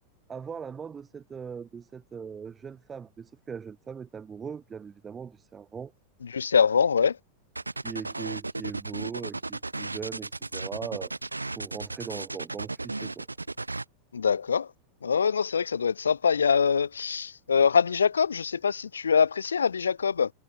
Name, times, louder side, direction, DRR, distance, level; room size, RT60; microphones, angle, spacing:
voice 1, 0.3-5.9 7.8-11.1 11.5-13.3, right 6 dB, 20° right, 1.1 m, -40 dB
voice 2, 6.3-7.2 14.1-14.7 15.0-20.3, left 6 dB, 70° left, 1.0 m, -24 dB
sound 1, 7.5-13.8, right 2 dB, 80° right, 0.4 m, -35 dB
figure-of-eight pair, 90°, 0 cm